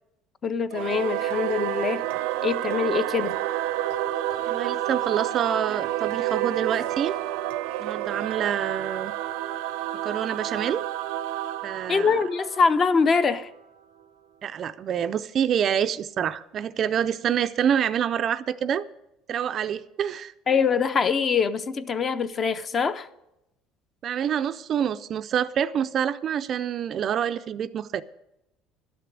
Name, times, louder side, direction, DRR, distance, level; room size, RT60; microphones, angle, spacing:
voice 1, 0.4-2.0 2.4-3.4 11.9-13.5 20.5-23.1, left 5 dB, 25° left, 0.5 m, -24 dB
Singing / Musical instrument, 0.7-13.6, right 13 dB, 85° right, 0.6 m, -29 dB
voice 2, 4.5-7.1 7.8-9.1 10.0-10.8 11.6-12.1 14.4-18.8 19.3-20.3 24.0-28.0, right 9 dB, 35° right, 0.4 m, -27 dB
12.0 x 6.8 x 9.7 m
cardioid pair, 170°, 0 cm